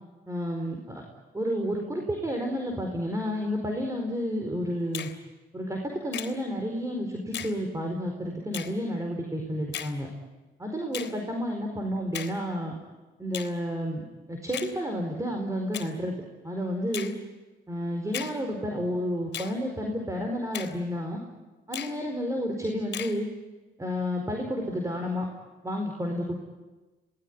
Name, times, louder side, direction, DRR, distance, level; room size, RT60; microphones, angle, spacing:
voice 1, 0.3-1.0 1.3-5.1 5.5-10.1 10.6-12.7 13.2-14.0 14.3-16.1 16.4-17.1 17.7-21.2 21.7-23.3 23.8-25.3 25.6-26.4, equal, 15° right, 2 dB, 4.7 m, -31 dB
Finger snapping, 4.9-5.2 6.1-6.4 7.3-7.6 8.5-8.7 9.7-10.0 10.9-11.2 12.1-12.4 13.3-13.5 14.5-14.7 15.7-15.9 16.9-17.2 18.1-18.4 19.3-19.6 20.5-20.8 21.7-22.0 22.9-23.2, left 10 dB, 65° left, 3.5 m, -36 dB
27.0 x 19.0 x 9.7 m, 1.2 s
cardioid pair, 90°, 20 cm